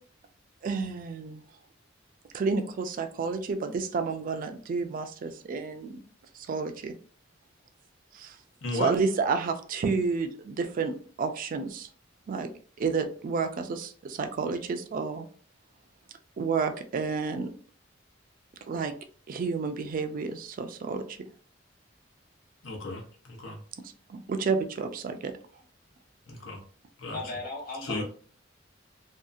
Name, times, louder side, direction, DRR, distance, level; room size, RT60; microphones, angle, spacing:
voice 1, 0.6-1.4 2.3-6.0 6.3-6.9 8.1-8.4 8.7-11.9 12.3-12.5 12.8-15.3 16.4-17.5 18.7-18.9 19.3-21.2 23.8-25.3, right 4 dB, 45° right, 7 dB, 0.3 m, -30 dB
voice 2, 8.6-8.9 22.6-23.6 26.3-26.6 27.0-27.2 27.8-28.0, left 2 dB, 90° left, 1 dB, 0.7 m, -34 dB
voice 3, 27.1-28.0, left 2 dB, 50° left, -3 dB, 1.2 m, -36 dB
2.7 x 2.4 x 2.3 m, 0.43 s
head